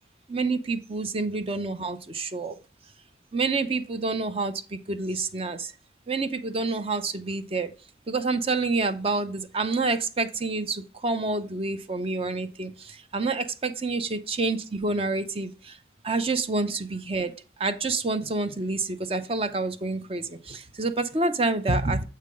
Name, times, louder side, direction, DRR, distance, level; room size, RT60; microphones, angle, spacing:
voice 1, 0.3-2.6 3.3-5.7 6.1-7.7 8.1-15.8 16.0-22.0, right 3 dB, 30° right, 0.6 m, -28 dB
7.5 x 5.7 x 3.6 m
head